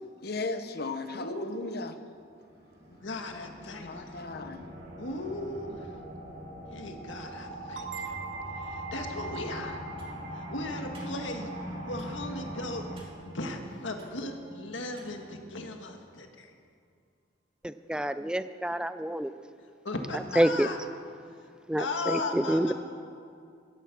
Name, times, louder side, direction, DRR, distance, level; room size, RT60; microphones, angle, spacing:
voice 1, 0.2-2.0 3.8-4.6, left 3 dB, 55° left, 9 dB, 0.9 m, -36 dB
voice 2, 1.1-1.5 2.9-3.9 5.0-5.8 6.7-7.9 8.9-9.8 10.5-11.5 11.9-12.8 13.3-16.3 19.9-20.8 21.8-22.7, left 2 dB, 85° left, 4 dB, 1.7 m, -36 dB
sound 1, 2.3-12.9, equal, 65° right, 4.3 m, -41 dB
sound 2, 7.8-13.2, right 6 dB, 85° right, 1.0 m, -45 dB
sound 3, 9.2-15.4, right 2 dB, 30° right, 2.5 m, -50 dB
voice 3, 17.6-19.3 20.4-20.7 21.7-22.7, right 1 dB, 5° right, 12 dB, 0.4 m, -27 dB
16.5 x 13.5 x 6.1 m, 2.3 s
head